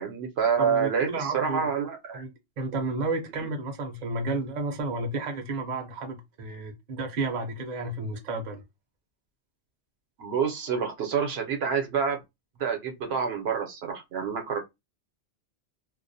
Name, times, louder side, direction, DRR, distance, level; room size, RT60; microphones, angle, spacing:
voice 1, 0.0-2.2 3.4-3.5 10.2-12.2 12.6-14.6, right 6 dB, 75° right, 0.9 m, -27 dB
voice 2, 0.6-1.7 2.1-8.6, right 3 dB, 50° right, 0.6 m, -32 dB
2.3 x 2.1 x 2.6 m
omnidirectional pair, 1.1 m